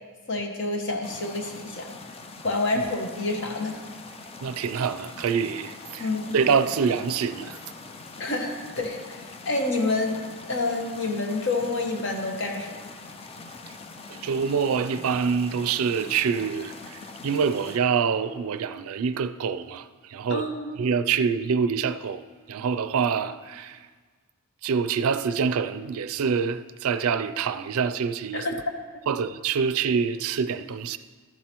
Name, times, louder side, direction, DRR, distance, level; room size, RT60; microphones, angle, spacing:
voice 1, 0.3-1.9 2.4-3.8 6.0-6.4 8.2-10.2 10.5-12.8 20.3-20.7 28.3-28.6 28.9-29.0, left 2 dB, 55° left, 1.1 m, -28 dB
sound 1, 1.0-17.8, left 3 dB, 25° left, 0.4 m, -43 dB
voice 2, 4.4-6.1 6.3-7.6 14.1-20.4 20.8-22.2 22.5-23.8 24.6-28.5 29.1-31.0, right 6 dB, 80° right, 0.4 m, -26 dB
13.0 x 7.4 x 3.0 m
head